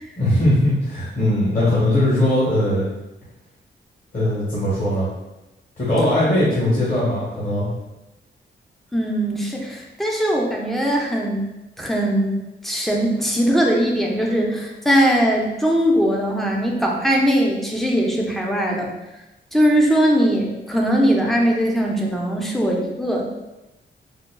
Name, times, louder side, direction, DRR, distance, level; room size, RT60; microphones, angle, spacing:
voice 1, 0.2-2.9 4.1-5.1 5.8-7.7, left 1 dB, 45° left, -8 dB, 1.3 m, -19 dB
voice 2, 8.9-11.4 11.8-12.4 12.6-18.9 19.5-23.3, equal, ahead, -1 dB, 0.5 m, -20 dB
5.0 x 2.2 x 2.2 m, 0.98 s
wide cardioid pair, 130°, 20 cm